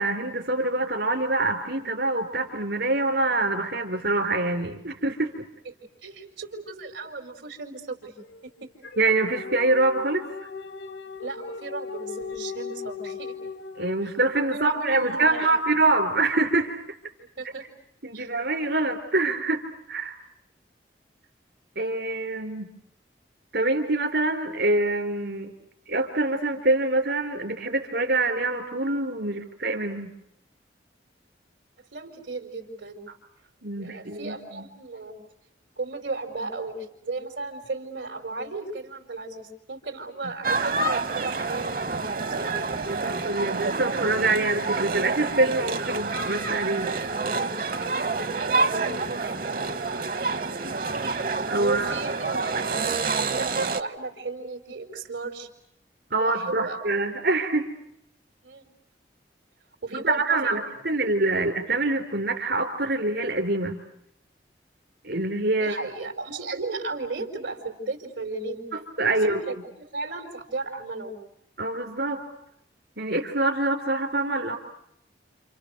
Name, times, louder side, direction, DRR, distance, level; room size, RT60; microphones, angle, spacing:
voice 1, 0.0-5.5 9.0-10.5 13.8-16.8 18.0-19.6 19.9-20.2 21.8-22.7 23.5-25.5 25.9-30.1 33.6-34.6 42.9-46.9 51.5-51.9 56.1-57.7 60.0-63.8 65.0-65.8 68.7-69.4 71.6-72.2 73.0-74.6, right 2 dB, 70° right, 2 dB, 3.7 m, -25 dB
voice 2, 5.6-8.1 8.4-8.7 11.2-13.4 14.0-14.1 14.5-15.6 17.2-17.7 18.1-18.3 31.9-33.1 33.7-35.1 35.8-42.1 42.4-42.6 47.8-48.2 48.6-50.4 51.6-52.6 53.2-55.5 56.1-56.8 58.4-58.7 59.8-60.6 65.6-68.6 69.2-71.2, right 3 dB, 85° right, 4 dB, 5.0 m, -35 dB
sound 1, 8.2-14.5, left 5 dB, 90° left, 1.3 m, -38 dB
sound 2, 40.4-53.8, right 3 dB, 50° right, 1.2 m, -28 dB
29.0 x 28.5 x 6.6 m, 0.77 s
head